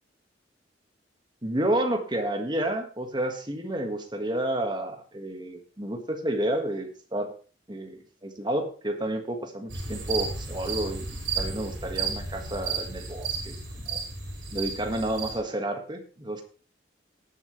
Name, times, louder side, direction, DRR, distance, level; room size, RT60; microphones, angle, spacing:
voice 1, 1.4-7.3 7.7-11.1 11.3-14.0 14.5-16.4, right 1 dB, 25° right, 5 dB, 1.7 m, -30 dB
sound 1, 9.7-15.4, right 5 dB, 85° right, 5.2 m, -33 dB
18.5 x 7.5 x 3.2 m, 0.36 s
head